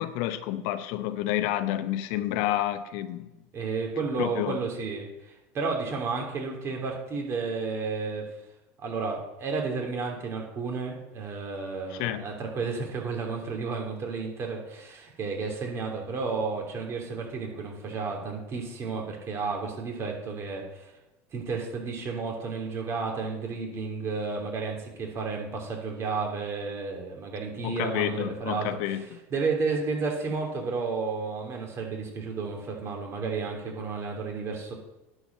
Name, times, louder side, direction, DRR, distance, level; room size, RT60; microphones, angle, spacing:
voice 1, 0.0-3.3 4.2-4.6 11.9-12.3 27.6-29.2, left 13 dB, 70° left, 0.8 m, -29 dB
voice 2, 3.5-8.3 8.8-20.9 21.3-29.0 29.3-34.7, right 4 dB, 40° right, 3.1 m, -32 dB
10.5 x 5.0 x 6.5 m
supercardioid pair, 105°, 7 cm